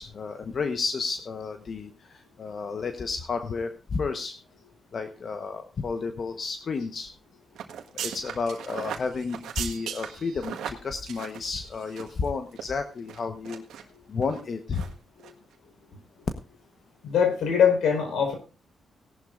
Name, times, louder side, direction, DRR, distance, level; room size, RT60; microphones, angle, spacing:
voice 1, 0.0-4.3 4.9-7.1 7.9-13.6 14.1-14.8, left 4 dB, 50° left, 7 dB, 1.1 m, -32 dB
sound 1, 7.6-12.3 12.5-12.6 13.1-13.8 14.2-14.4 14.7-14.9 15.2-15.3, right 9 dB, 90° right, 1.6 m, -37 dB
voice 2, 17.0-18.4, left 7 dB, 85° left, 5 dB, 4.6 m, -22 dB
17.5 x 11.5 x 2.6 m, 0.34 s
cardioid pair, 90°, 0 cm